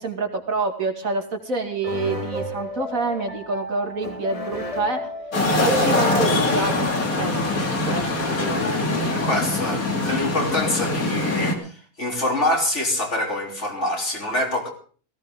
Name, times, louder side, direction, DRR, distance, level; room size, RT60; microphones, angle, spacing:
voice 1, 0.0-5.1 5.6-7.4 7.9-8.1, right 3 dB, 70° right, 4 dB, 2.6 m, -27 dB
sound 1, 1.8-9.5, left 1 dB, 25° left, 2.0 m, -32 dB
sound 2, 5.3-11.6, left 2 dB, 75° left, 3.1 m, -23 dB
voice 2, 9.1-14.7, left 1 dB, 55° left, 0 dB, 3.9 m, -25 dB
18.0 x 16.0 x 3.8 m, 0.42 s
omnidirectional pair, 1.5 m